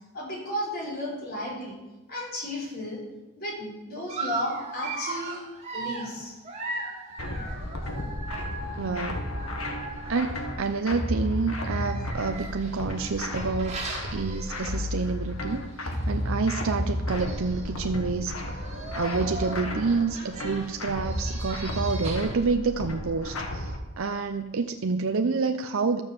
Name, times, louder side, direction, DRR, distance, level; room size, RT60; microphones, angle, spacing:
voice 1, 0.1-1.8 2.1-3.0 3.3-5.4 5.7-6.3, left 1 dB, 45° left, -3 dB, 5.0 m, -34 dB
Dog, 4.1-10.7 11.5-15.1 15.5-15.7 15.9-16.0 16.9-17.0 17.2-17.7 18.4-22.5, right 3 dB, 30° right, 1.9 m, -38 dB
sound 1, 7.2-23.8, left 1 dB, 70° left, 1.7 m, -33 dB
voice 2, 8.8-9.2 10.1-13.8 14.1-18.3 19.0-26.0, right 4 dB, 65° right, 6 dB, 0.6 m, -28 dB
12.0 x 7.1 x 7.2 m, 1.1 s
head